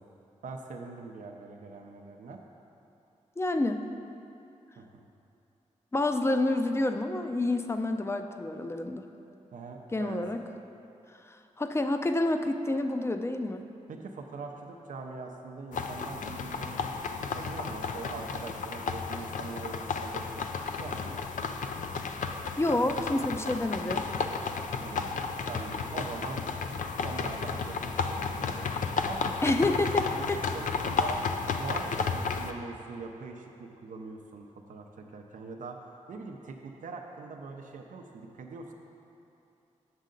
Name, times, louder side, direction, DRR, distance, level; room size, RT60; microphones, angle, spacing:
voice 1, 0.4-2.4 4.8-5.0 9.5-10.2 13.9-16.9 17.3-20.2 20.8-21.2 24.8-26.5 27.0-29.6 30.2-30.3 30.5-31.2 31.5-38.7, right 4 dB, 80° right, 2 dB, 0.5 m, -42 dB
voice 2, 3.4-3.8 5.9-9.1 9.9-10.4 11.6-13.6 22.6-24.1 29.4-30.4, left 2 dB, 20° left, 7 dB, 0.5 m, -28 dB
sound 1, 15.7-32.5, left 5 dB, 75° left, 0.4 m, -33 dB
7.5 x 6.4 x 3.8 m, 2.8 s
cardioid pair, 55°, 13 cm